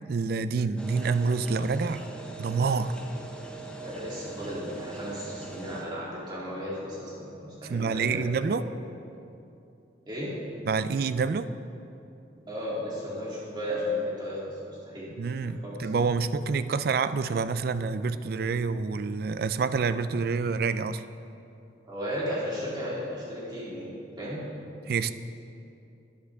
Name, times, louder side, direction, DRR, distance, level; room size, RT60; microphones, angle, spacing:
voice 1, 0.1-2.0 2.4-2.9 7.6-8.6 10.7-11.5 15.2-21.0 24.8-25.1, right 4 dB, 55° right, 13 dB, 0.4 m, -27 dB
sound 1, 0.8-5.8, right 3 dB, 5° left, 0.8 m, -42 dB
voice 2, 3.8-8.7 10.1-10.4 12.4-15.1 15.4-15.9 21.9-24.5, left 1 dB, 25° right, -8 dB, 2.8 m, -35 dB
12.5 x 10.0 x 3.5 m, 2.7 s
head